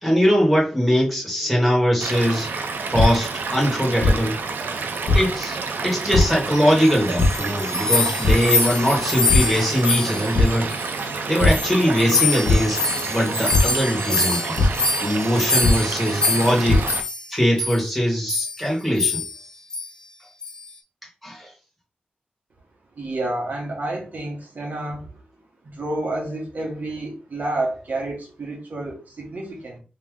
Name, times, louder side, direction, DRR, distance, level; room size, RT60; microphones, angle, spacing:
voice 1, 0.0-2.6 2.9-4.4 5.1-5.6 5.8-10.7 11.3-14.6 15.0-16.9 17.3-19.2 21.2-21.5, equal, ahead, -4 dB, 1.9 m, -21 dB
Stream / Liquid, 2.0-17.0, right 4 dB, 80° right, 0.5 m, -29 dB
sound 1, 2.9-3.0 4.0-4.1 5.1-5.2 6.1-6.2 7.2-7.3 8.2-8.3 8.8-9.0 9.3-9.4 10.3-10.4 11.4-11.5 12.5-12.6 13.5-13.6 14.6-14.7 15.6-15.7 16.4-16.8, left 3 dB, 60° left, 1.4 m, -18 dB
sound 2, 6.8-11.1 11.3-17.3 17.6-17.8 18.3-18.6 19.0-19.4 19.7-19.9 20.4-20.7, left 3 dB, 30° left, 1.0 m, -25 dB
voice 2, 23.0-25.1 25.6-29.8, right 2 dB, 60° right, -1 dB, 1.4 m, -29 dB
3.3 x 3.1 x 3.6 m, 0.33 s
wide cardioid pair, 120°, 3 cm